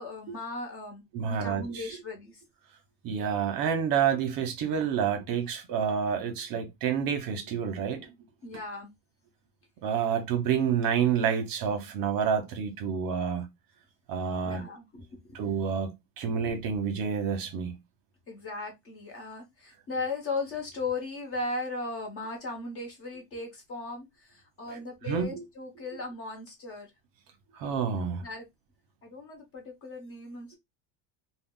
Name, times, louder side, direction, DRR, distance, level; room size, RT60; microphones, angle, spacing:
voice 1, 0.0-2.4 8.4-8.9 14.4-15.4 18.3-26.9 28.2-28.5 29.0-30.6, left 3 dB, 30° left, 0.8 m, -37 dB
voice 2, 1.1-2.0 3.0-8.1 9.8-13.5 14.1-14.6 15.3-17.8 24.7-24.8 25.1-25.4 27.6-28.2, right 7 dB, 50° right, 0.7 m, -29 dB
2.3 x 2.1 x 3.7 m
cardioid pair, 170°, 45 cm